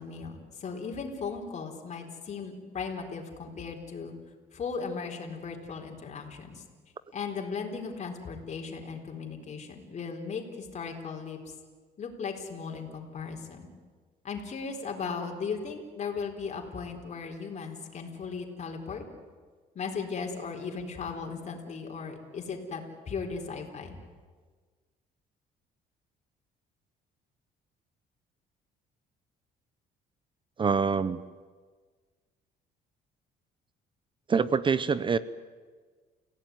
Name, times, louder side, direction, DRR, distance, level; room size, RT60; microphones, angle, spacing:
voice 1, 0.0-4.1 4.5-6.6 7.1-11.4 12.0-13.7 14.2-19.0 19.7-24.0, left 5 dB, 40° left, 2 dB, 4.2 m, -37 dB
voice 2, 30.6-31.2 34.3-35.2, right 5 dB, 30° right, 16 dB, 0.8 m, -25 dB
29.5 x 16.5 x 9.5 m, 1.5 s
cardioid pair, 110°, 17 cm